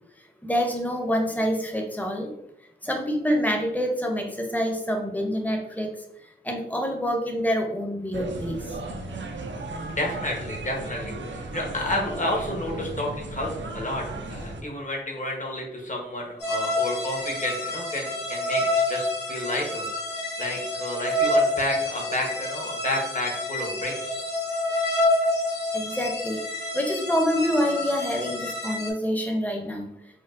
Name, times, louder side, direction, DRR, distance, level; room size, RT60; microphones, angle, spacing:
voice 1, 0.4-2.3 2.8-5.9 6.4-8.6 25.7-26.4 26.7-29.9, equal, 10° left, 2 dB, 0.6 m, -26 dB
sound 1, 8.1-14.6, right 2 dB, 90° right, 0.4 m, -35 dB
voice 2, 9.9-19.9 20.4-24.2, left 1 dB, 45° left, 0 dB, 0.9 m, -31 dB
sound 2, 16.4-28.9, left 1 dB, 65° left, 1.1 m, -28 dB
4.4 x 2.1 x 2.4 m, 0.79 s
wide cardioid pair, 60°, 19 cm